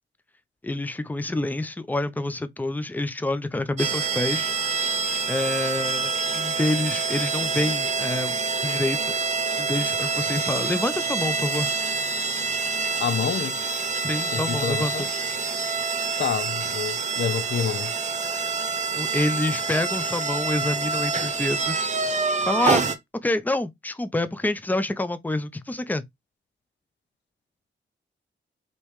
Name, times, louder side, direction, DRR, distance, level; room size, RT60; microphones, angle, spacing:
voice 1, 0.6-4.5 5.3-9.1 9.6-11.7 14.0-14.9 18.9-21.9 22.4-22.8 23.2-26.0, left 2 dB, 10° left, 0.6 m, -27 dB
sound 1, 3.8-23.0, right 4 dB, 35° right, 0.9 m, -26 dB
voice 2, 13.0-13.6 14.3-15.1 16.2-17.9, left 7 dB, 60° left, 0.6 m, -28 dB
5.2 x 3.0 x 3.2 m
cardioid pair, 85°, 20 cm